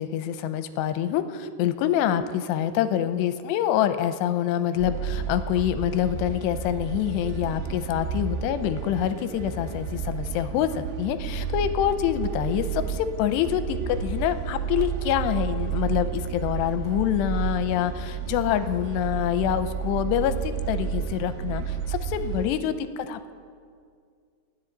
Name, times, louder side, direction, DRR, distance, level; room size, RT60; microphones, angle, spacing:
voice 1, 0.0-23.3, left 10 dB, 85° left, 10 dB, 2.8 m, -26 dB
sound 1, 4.8-22.5, right 7 dB, 80° right, 2.7 m, -31 dB
29.0 x 10.0 x 3.9 m, 2.2 s
omnidirectional pair, 4.9 m